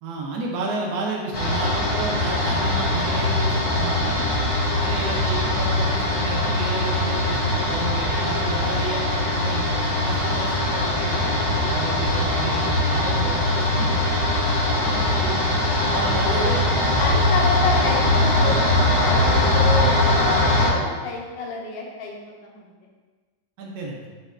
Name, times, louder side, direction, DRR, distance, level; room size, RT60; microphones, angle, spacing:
voice 1, 0.0-4.3 4.7-14.0 14.7-15.4 15.9-16.6 23.6-24.0, right 3 dB, 70° right, -2 dB, 1.0 m, -31 dB
sound 1, 1.3-20.7, left 1 dB, 50° left, 0.7 m, -21 dB
voice 2, 16.0-22.1 22.4-22.7, left 2 dB, 85° left, -1 dB, 1.4 m, -30 dB
6.2 x 2.2 x 2.4 m, 1.4 s
omnidirectional pair, 2.0 m